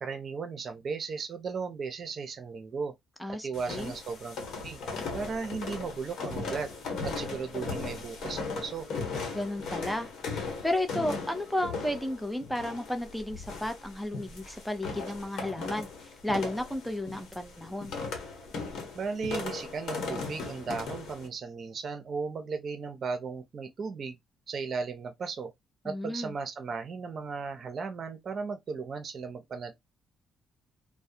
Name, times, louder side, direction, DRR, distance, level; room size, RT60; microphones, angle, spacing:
voice 1, 0.0-2.9 3.3-4.8 5.1-6.7 7.0-8.9 18.9-24.2 24.5-25.5 25.8-29.8, right 5 dB, 50° right, 0.7 m, -36 dB
voice 2, 3.2-3.9 9.3-10.1 10.6-15.9 16.2-17.9 25.8-26.3, left 1 dB, ahead, 0.6 m, -33 dB
sound 1, 3.5-21.3, left 4 dB, 70° left, 1.0 m, -38 dB
2.3 x 2.1 x 2.6 m
cardioid pair, 90°, 0 cm